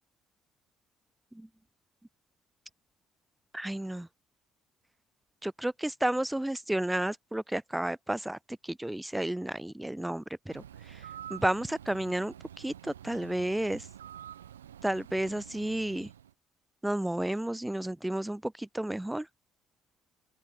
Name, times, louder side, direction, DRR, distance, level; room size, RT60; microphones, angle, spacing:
voice 1, 3.5-4.1 5.4-8.4 8.6-11.0 11.3-13.9 14.8-16.1 16.8-19.3, right 1 dB, 10° right, 0.6 m, -32 dB
Bird, 10.5-16.3, right 10 dB, 90° right, 0.4 m, -48 dB
open air
hypercardioid pair, 50°, 0 cm